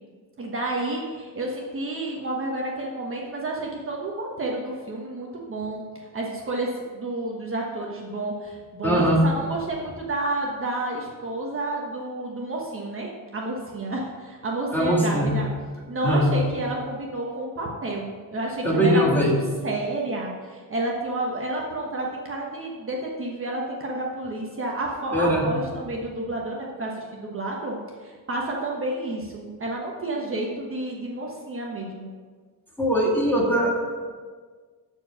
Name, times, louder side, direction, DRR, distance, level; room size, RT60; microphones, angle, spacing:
voice 1, 0.4-5.8 6.1-15.5 15.9-32.1, right 2 dB, 35° right, -2 dB, 1.3 m, -30 dB
voice 2, 8.8-9.2 14.7-15.3 16.0-16.3 18.6-19.3 25.1-25.5 32.8-33.7, equal, 5° left, -3 dB, 2.1 m, -21 dB
14.0 x 4.7 x 5.8 m, 1.6 s
wide cardioid pair, 150°, 36 cm